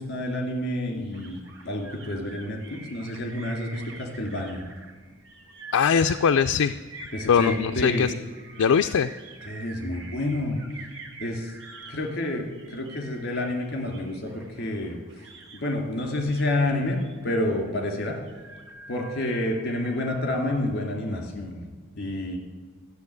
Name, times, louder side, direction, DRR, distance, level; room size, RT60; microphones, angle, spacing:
voice 1, 0.0-4.6 7.1-8.1 9.4-10.6 11.2-11.5 11.9-15.0 15.5-18.2 18.9-21.7 21.9-22.4, left 1 dB, 45° left, 2 dB, 2.7 m, -29 dB
sound 1, 1.1-20.1, right 3 dB, 60° right, 1.6 m, -45 dB
voice 2, 5.7-6.8 7.3-8.1 8.6-9.1, left 7 dB, 80° left, 7 dB, 0.4 m, -21 dB
13.0 x 7.0 x 9.7 m, 1.3 s
head